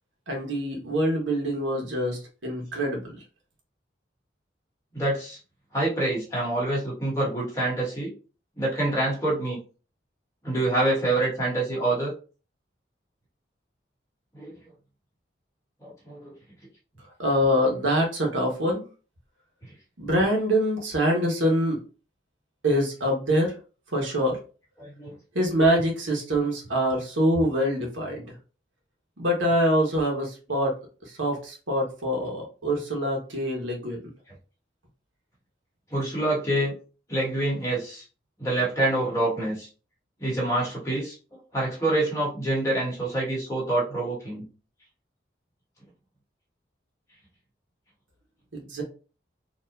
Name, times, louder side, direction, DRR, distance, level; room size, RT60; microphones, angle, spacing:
voice 1, 0.3-3.2 17.2-18.8 20.0-21.8 22.6-23.6 23.9-24.4 25.3-28.3 29.2-30.7 31.0-34.1 48.5-48.8, equal, 90° right, 0 dB, 1.4 m, -25 dB
voice 2, 4.9-5.4 5.7-8.1 8.6-9.6 10.4-12.1 14.3-14.5 15.8-16.3 24.8-25.1 35.9-36.7 37.1-38.0 38.4-39.7 40.2-44.5, right 2 dB, 15° left, -5 dB, 1.8 m, -26 dB
4.4 x 2.9 x 2.7 m, 0.35 s
head